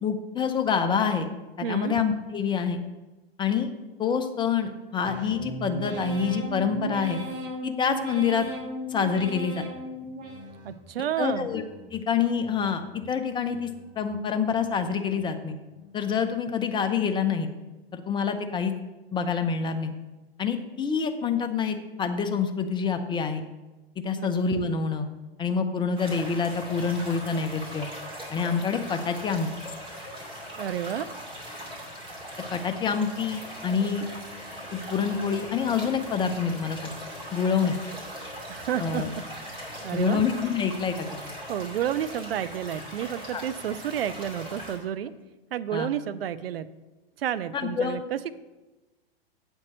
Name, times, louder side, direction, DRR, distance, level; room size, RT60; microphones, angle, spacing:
voice 1, 0.0-1.3 1.6-2.8 3.4-3.7 4.0-7.2 7.6-8.5 8.9-9.7 11.2-11.6 11.9-13.7 14.0-15.6 15.9-17.5 17.9-18.7 19.1-19.9 20.4-23.4 24.0-25.1 25.4-27.9 28.3-29.5 32.5-34.1 34.7-36.9 37.3-37.8 38.8-39.1 39.9-41.1 43.3-43.4 45.7-45.9 47.5-48.0, left 6 dB, 15° left, 7 dB, 0.6 m, -27 dB
voice 2, 1.6-2.0 10.6-11.5 24.2-24.3 30.6-31.1 38.5-40.2 41.5-45.1 45.5-46.7 47.2-48.3, right 10 dB, 70° right, 15 dB, 0.5 m, -31 dB
sound 1, 5.0-10.9 11.3-11.9 12.4-13.0 13.5-14.1 14.6-15.2 15.7-16.2, right 2 dB, 35° right, 2.4 m, -37 dB
sound 2, 26.0-44.8, equal, 15° right, 2.4 m, -40 dB
8.2 x 4.5 x 6.5 m, 1.1 s
hypercardioid pair, 110°, 30 cm